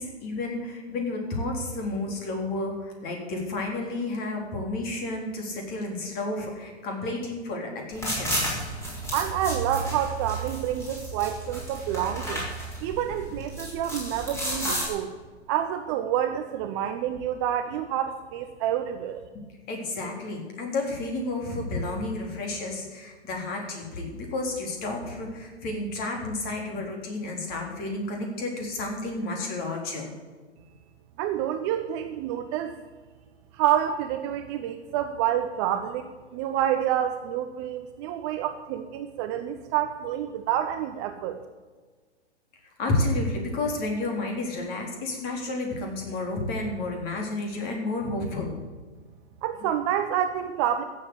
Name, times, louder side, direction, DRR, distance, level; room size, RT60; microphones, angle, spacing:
voice 1, 0.0-8.4 19.7-30.1 42.8-48.5, left 2 dB, 25° left, 2 dB, 3.7 m, -31 dB
sound 1, 7.9-14.9, right 1 dB, 10° left, 5.5 m, -32 dB
voice 2, 9.1-12.5 12.8-15.1 15.5-19.2 31.2-32.7 33.5-41.4 49.4-50.8, right 10 dB, 25° right, 8 dB, 0.7 m, -28 dB
15.0 x 7.7 x 8.1 m, 1.4 s
figure-of-eight pair, 125°, 33 cm